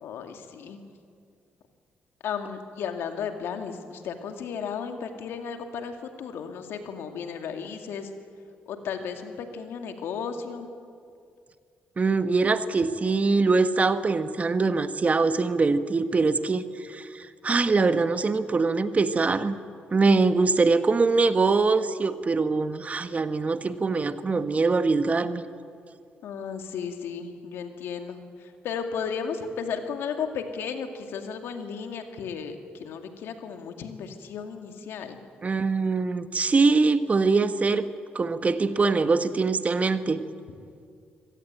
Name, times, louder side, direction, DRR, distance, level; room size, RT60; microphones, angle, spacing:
voice 1, 0.0-0.8 2.2-8.1 8.7-10.7 26.2-35.2, left 6 dB, 75° left, 6 dB, 2.3 m, -34 dB
voice 2, 12.0-19.6 19.9-25.4 35.4-37.9 38.1-40.2, right 4 dB, 35° right, 11 dB, 1.4 m, -23 dB
25.0 x 17.5 x 9.2 m, 2.3 s
supercardioid pair, 60°, 4 cm